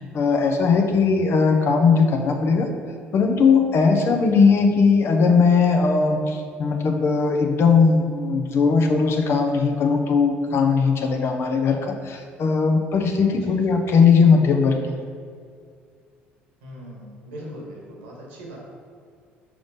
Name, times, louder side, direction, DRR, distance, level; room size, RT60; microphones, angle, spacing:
voice 1, 0.0-2.7 3.1-14.8, left 5 dB, 45° left, 4 dB, 0.8 m, -19 dB
voice 2, 16.6-18.6, equal, 75° right, -3 dB, 1.5 m, -39 dB
5.1 x 3.7 x 5.1 m, 2.2 s
figure-of-eight pair, 55°, 6 cm